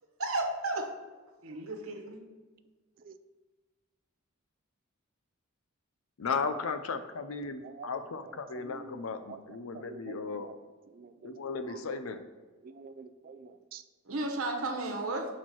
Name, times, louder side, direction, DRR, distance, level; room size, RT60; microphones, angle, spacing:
voice 1, 0.2-0.9 1.4-2.2 14.0-15.3, right 2 dB, 85° right, 1 dB, 1.1 m, -33 dB
voice 2, 6.2-10.5 11.2-12.2, left 4 dB, 80° left, 9 dB, 0.6 m, -35 dB
voice 3, 8.5-9.0 9.3-9.4 9.7-10.5 10.9-11.3 11.7-11.8 12.6-13.8, right 5 dB, 45° right, 10 dB, 0.4 m, -48 dB
6.0 x 4.3 x 4.6 m, 1.3 s
head